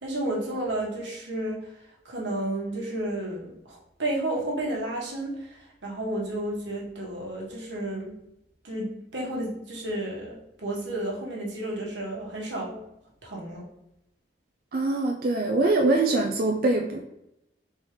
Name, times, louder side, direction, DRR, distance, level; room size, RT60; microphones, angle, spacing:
voice 1, 0.0-1.7 2.0-8.2 8.6-12.9 13.2-13.6, right 1 dB, 90° right, -3 dB, 1.3 m, -32 dB
voice 2, 14.7-17.0, right 2 dB, 55° right, 1 dB, 0.4 m, -23 dB
3.9 x 3.6 x 3.1 m, 0.85 s
head